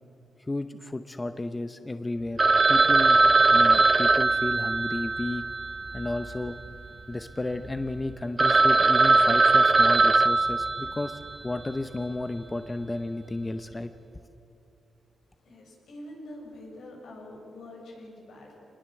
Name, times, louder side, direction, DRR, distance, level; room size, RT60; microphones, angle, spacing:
voice 1, 0.5-2.4 2.7-5.4 5.9-6.6 7.1-13.9, left 2 dB, 15° left, 9 dB, 0.8 m, -33 dB
Telephone, 2.4-6.7 7.0-7.1 7.6-7.7 8.1-8.2 8.4-11.3, right 3 dB, 30° right, 0.8 m, -21 dB
voice 2, 15.4-18.5, left 1 dB, 80° left, -1 dB, 7.2 m, -45 dB
26.0 x 20.5 x 7.9 m, 2.9 s
cardioid pair, 120°, 0 cm